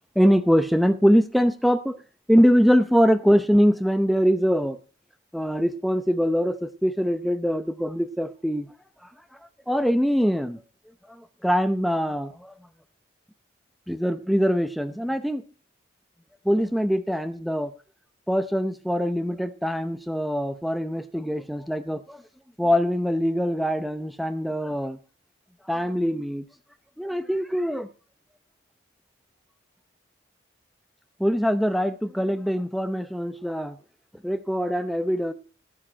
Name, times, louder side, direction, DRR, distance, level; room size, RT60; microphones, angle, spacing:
voice 1, 0.2-2.0 2.3-4.8 5.3-8.7 9.7-10.6 11.1-12.5 13.9-15.4 16.4-17.7 18.3-22.2 22.6-25.0 25.7-26.5 27.0-27.9 31.2-33.8 34.2-35.3, equal, ahead, 9 dB, 0.7 m, -23 dB
17.5 x 7.6 x 4.4 m, 0.39 s
head